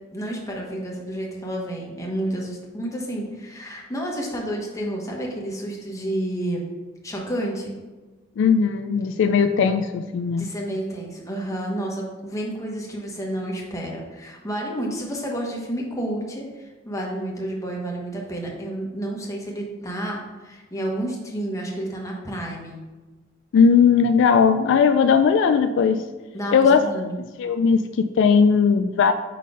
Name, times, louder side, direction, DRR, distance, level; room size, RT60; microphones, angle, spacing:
voice 1, 0.1-6.6 7.0-7.7 10.4-22.8 26.3-27.1, right 1 dB, 15° left, -2 dB, 1.2 m, -30 dB
voice 2, 8.4-10.5 23.5-26.0 26.5-26.8 27.4-29.1, left 6 dB, 65° left, 9 dB, 0.3 m, -18 dB
5.4 x 4.2 x 4.9 m, 1.2 s
head